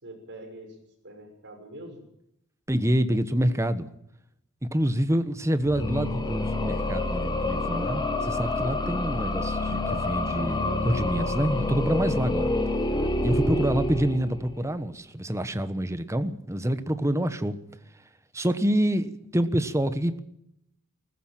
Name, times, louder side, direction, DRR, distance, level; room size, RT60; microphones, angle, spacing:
voice 1, 0.0-2.0 10.6-10.9, right 1 dB, 55° right, 6.5 m, -44 dB
voice 2, 2.7-3.9 4.7-12.5 13.2-17.6 18.3-20.2, equal, 15° right, 1.2 m, -27 dB
sound 1, 5.6-14.7, left 2 dB, 20° left, 2.2 m, -28 dB
19.5 x 15.0 x 9.1 m
head